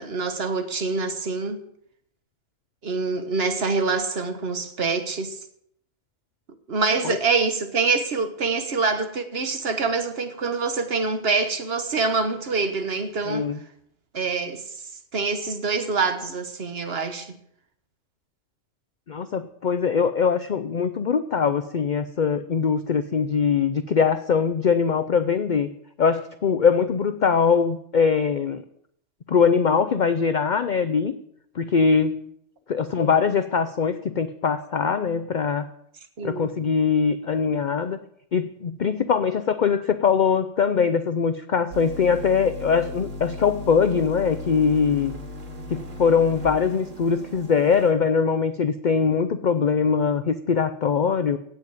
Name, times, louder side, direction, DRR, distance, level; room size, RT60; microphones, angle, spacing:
voice 1, 0.0-1.6 2.8-5.4 6.7-13.5 14.1-14.7 15.1-17.3 36.2-36.5, right 4 dB, 50° right, 1.5 m, -25 dB
voice 2, 13.3-13.6 19.1-25.7 26.0-28.6 29.3-31.1 31.6-32.2 32.7-35.7 36.2-38.0 38.3-45.1 45.7-51.4, left 6 dB, 50° left, 0.6 m, -22 dB
sound 1, 41.7-47.9, left 1 dB, 75° right, 2.7 m, -37 dB
17.0 x 5.7 x 9.2 m
omnidirectional pair, 1.3 m